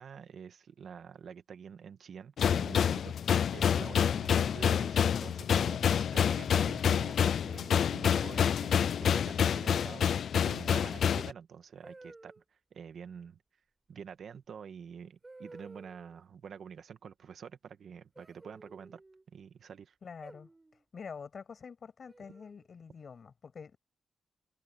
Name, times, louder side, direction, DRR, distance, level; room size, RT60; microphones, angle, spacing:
voice 1, 0.0-3.1 3.5-12.3 12.7-13.4 13.9-19.0 19.3-19.9, right 7 dB, 75° right, 1.7 m, -47 dB
sound 1, 2.4-11.3, left 8 dB, 80° left, 0.5 m, -28 dB
sound 2, 5.0-5.8 7.1-7.5 7.9-8.3 9.7-10.4 11.8-12.4 14.4-14.5 15.2-16.2 18.2-19.2 20.2-20.9 22.1-22.7, right 2 dB, 25° right, 5.3 m, -54 dB
voice 2, 20.0-20.5 20.9-23.8, left 6 dB, 55° left, 6.7 m, -46 dB
cardioid pair, 80°, 0 cm